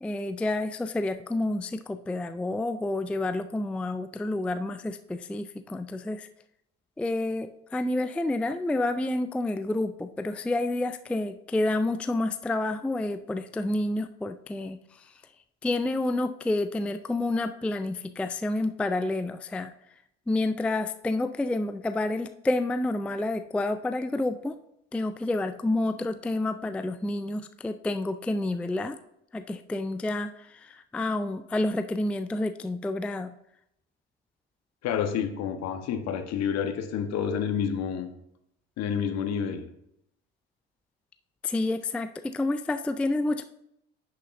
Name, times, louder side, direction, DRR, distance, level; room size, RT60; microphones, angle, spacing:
voice 1, 0.0-6.3 7.0-15.1 15.6-19.7 20.3-24.6 24.9-29.0 29.3-33.3 41.4-43.4, left 2 dB, 5° left, 10 dB, 0.3 m, -29 dB
voice 2, 34.8-38.1 38.8-39.6, left 7 dB, 55° left, 7 dB, 1.1 m, -29 dB
10.0 x 6.5 x 2.6 m, 0.78 s
hypercardioid pair, 70°, 31 cm